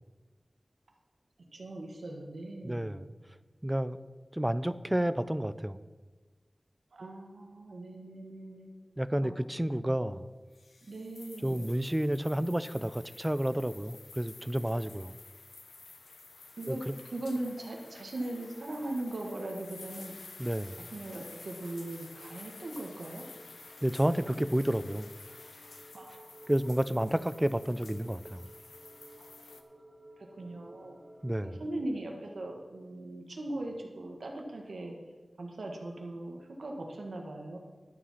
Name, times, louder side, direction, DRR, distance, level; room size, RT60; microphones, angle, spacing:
voice 1, 1.5-3.0 6.9-8.7 9.2-9.3 10.8-11.7 16.6-20.1 20.9-23.2 25.9-26.5 29.2-29.3 30.2-31.0 31.4-35.0 35.4-37.6, right 1 dB, 90° right, 2 dB, 1.6 m, -39 dB
voice 2, 2.6-3.1 3.6-4.0 4.3-5.8 9.0-10.3 11.4-15.1 16.7-16.9 20.4-20.8 23.8-25.1 26.5-28.4 31.2-31.5, right 1 dB, 15° right, 15 dB, 0.4 m, -30 dB
sound 1, 10.5-29.6, left 3 dB, 90° left, 0.8 m, -51 dB
sound 2, 21.6-31.7, right 1 dB, 65° right, 1.8 m, -56 dB
11.5 x 7.5 x 5.7 m, 1.3 s
wide cardioid pair, 65°, 0 cm